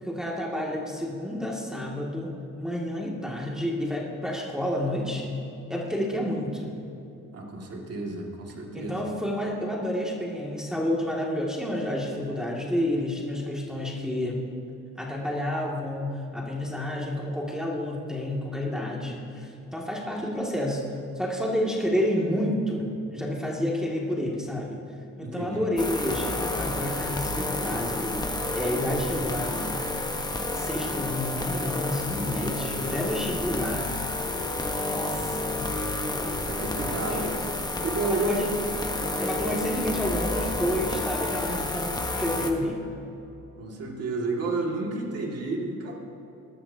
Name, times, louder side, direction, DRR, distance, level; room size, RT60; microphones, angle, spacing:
voice 1, 0.0-5.4 5.7-6.8 8.7-14.4 15.0-20.8 21.2-24.8 25.2-28.2 28.5-29.6 30.5-33.9 34.9-35.7 36.9-37.3 38.0-38.5 39.2-42.8, left 1 dB, ahead, -4 dB, 2.3 m, -30 dB
voice 2, 7.3-9.1 25.2-25.7 36.4-37.5 37.8-38.5 43.6-46.0, right 3 dB, 55° right, -1 dB, 2.3 m, -31 dB
sound 1, 25.8-42.5, left 2 dB, 15° left, 1.2 m, -30 dB
20.0 x 13.0 x 2.9 m, 2.9 s
cardioid pair, 90°, 30 cm